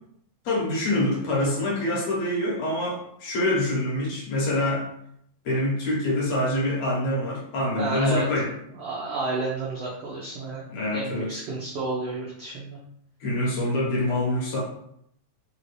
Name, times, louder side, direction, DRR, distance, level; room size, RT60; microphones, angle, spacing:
voice 1, 0.5-4.9 5.4-8.5 10.7-11.4 13.2-14.6, left 1 dB, 65° left, -5 dB, 2.1 m, -25 dB
voice 2, 7.8-8.3 8.8-10.6 10.9-12.8, right 3 dB, 90° right, -5 dB, 1.3 m, -31 dB
5.0 x 2.6 x 3.2 m, 0.72 s
omnidirectional pair, 3.8 m